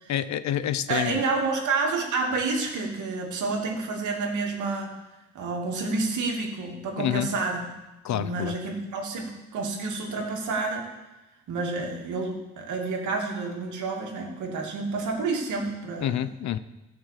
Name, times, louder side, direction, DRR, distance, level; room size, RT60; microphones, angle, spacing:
voice 1, 0.1-1.2 7.0-7.3 8.0-8.5 16.0-16.6, left 11 dB, 70° left, 14 dB, 0.7 m, -27 dB
voice 2, 0.9-4.9 5.3-7.7 8.1-10.9 11.5-16.3, right 3 dB, 75° right, 0 dB, 2.6 m, -29 dB
14.0 x 6.1 x 7.5 m, 1.0 s
cardioid pair, 90°, 30 cm